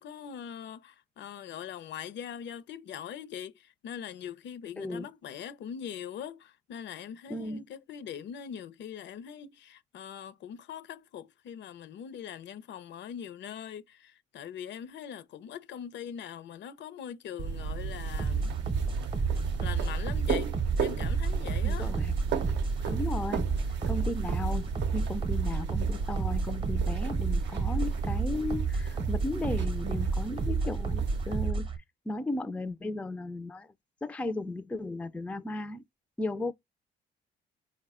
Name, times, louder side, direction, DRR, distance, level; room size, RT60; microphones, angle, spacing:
voice 1, 0.0-18.5 19.3-20.5 20.8-21.9 22.8-22.9, left 8 dB, 65° left, 0.5 m, -42 dB
voice 2, 4.8-5.1 7.3-7.6 21.6-22.1 22.9-23.5 23.9-31.7 32.1-33.7 34.0-35.8 36.2-36.5, left 2 dB, 5° left, 0.3 m, -35 dB
sound 1, 17.4-31.5, right 5 dB, 65° right, 0.5 m, -34 dB
sound 2, 18.2-31.8, right 4 dB, 25° right, 0.7 m, -31 dB
3.9 x 2.1 x 3.5 m
cardioid pair, 90°, 20 cm